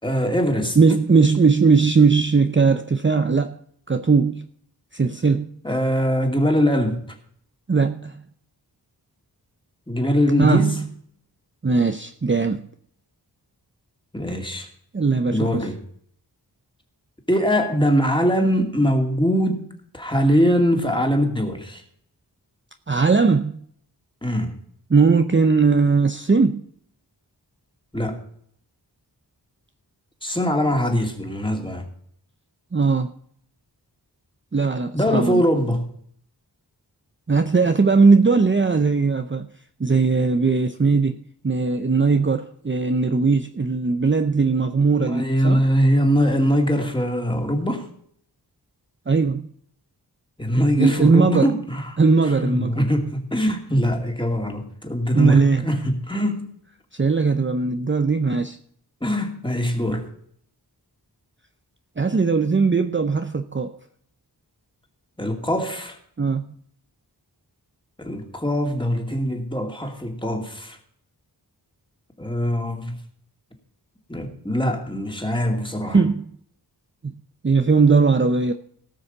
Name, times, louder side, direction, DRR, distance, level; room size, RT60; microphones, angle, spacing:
voice 1, 0.0-0.8 5.6-7.1 9.9-10.8 14.1-14.7 15.3-15.8 17.3-19.6 19.9-21.8 24.2-24.6 27.9-28.2 30.2-31.8 34.9-35.9 45.0-47.9 50.4-56.5 59.0-60.1 65.2-66.0 68.0-70.8 72.2-73.0 74.1-76.0, equal, 10° left, 2.5 m, -22 dB
voice 2, 0.8-3.6 3.9-4.5 4.9-5.5 7.7-8.1 10.4-10.9 11.6-12.6 14.9-15.6 22.9-23.6 24.9-26.6 32.7-33.1 34.5-35.4 37.3-39.5 39.8-45.6 49.1-49.5 50.8-51.5 52.0-52.7 55.1-55.7 56.9-58.6 62.0-63.8 66.2-66.5 75.9-76.3 77.0-77.1 77.4-78.5, right 4 dB, 30° right, 0.7 m, -19 dB
18.0 x 6.3 x 5.4 m
wide cardioid pair, 70°, 41 cm